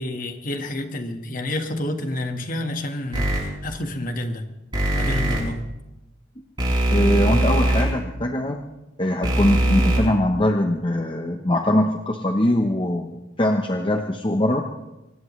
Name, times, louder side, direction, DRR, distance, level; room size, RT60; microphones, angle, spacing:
voice 1, 0.0-4.4 4.9-5.6, left 1 dB, 40° left, 5 dB, 1.6 m, -29 dB
sound 1, 3.1-3.4 4.7-5.4 6.6-7.8 9.2-10.0, right 1 dB, 25° right, 6.5 m, -20 dB
voice 2, 6.9-8.6 9.0-14.6, left 1 dB, 25° left, 3 dB, 0.9 m, -22 dB
24.0 x 18.5 x 3.2 m, 1.0 s
head